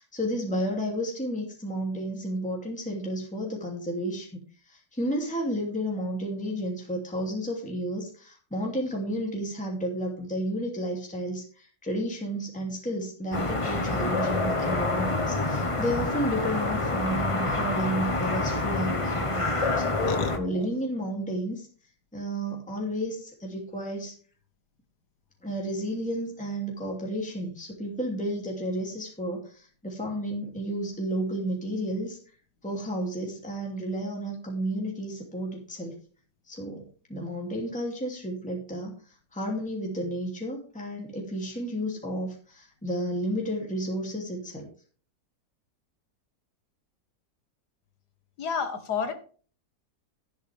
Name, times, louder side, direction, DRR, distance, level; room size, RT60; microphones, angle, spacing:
voice 1, 0.0-19.9 20.4-21.7 22.1-24.1 25.4-32.2 32.6-36.0 36.5-44.7, equal, 5° left, -1 dB, 2.7 m, -32 dB
sound 1, 13.3-20.4, left 2 dB, 20° left, 1.1 m, -27 dB
voice 2, 20.0-20.7 48.4-49.1, left 5 dB, 85° left, 8 dB, 2.1 m, -30 dB
12.5 x 11.0 x 3.5 m, 0.41 s
omnidirectional pair, 1.7 m